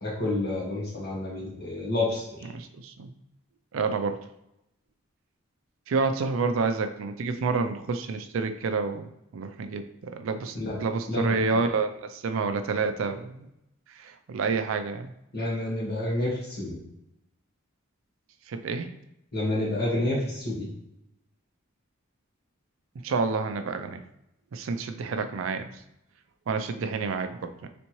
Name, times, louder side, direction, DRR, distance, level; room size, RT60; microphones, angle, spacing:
voice 1, 0.0-2.5 10.5-10.8 11.1-11.3 15.3-16.8 19.3-20.7, left 1 dB, 50° left, -4 dB, 1.5 m, -29 dB
voice 2, 2.5-3.1 3.7-4.2 5.9-9.1 9.3-10.6 10.8-13.5 13.9-15.1 18.5-18.9 23.0-24.0 24.5-25.7 26.5-27.7, right 4 dB, 70° right, 8 dB, 0.4 m, -29 dB
4.2 x 3.5 x 3.0 m, 0.85 s
head